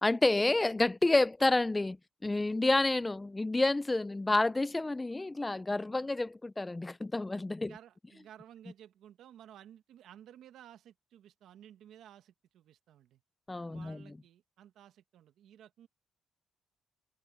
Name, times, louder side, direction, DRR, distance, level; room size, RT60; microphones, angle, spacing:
voice 1, 0.0-7.7 13.5-14.0, left 2 dB, 15° left, 0.5 m, -29 dB
voice 2, 7.6-13.2 13.7-15.9, right 10 dB, 80° right, 1.6 m, -55 dB
cardioid pair, 90°, 0 cm